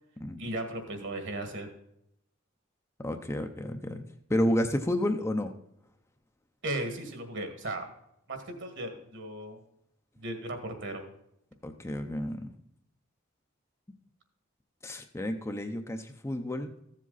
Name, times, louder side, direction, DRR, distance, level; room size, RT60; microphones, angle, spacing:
voice 1, 0.4-1.7 6.6-7.9 8.3-9.6 10.2-11.0, right 1 dB, 60° right, 6 dB, 1.9 m, -36 dB
voice 2, 3.0-4.0 4.3-5.5 11.6-12.5 14.8-16.7, left 1 dB, 15° left, 5 dB, 0.6 m, -30 dB
14.5 x 7.5 x 4.0 m, 0.78 s
head